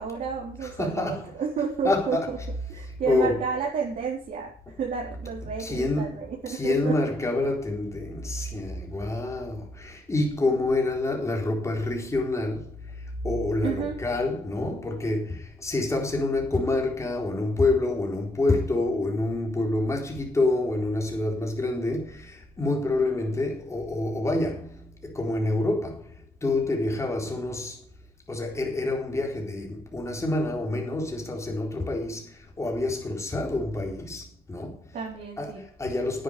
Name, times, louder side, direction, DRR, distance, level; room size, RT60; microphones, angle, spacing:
voice 1, 0.0-2.4 2.7-7.0 13.6-14.0 34.9-35.7, right 6 dB, 50° right, 4.1 m, -31 dB
voice 2, 0.8-1.3 1.8-2.3 3.1-3.5 5.6-6.2 6.5-12.7 13.2-26.1 26.4-27.8 28.3-34.8 35.4-36.2, left 2 dB, 15° left, 4.1 m, -27 dB
10.5 x 9.4 x 6.8 m
cardioid pair, 110°, 17 cm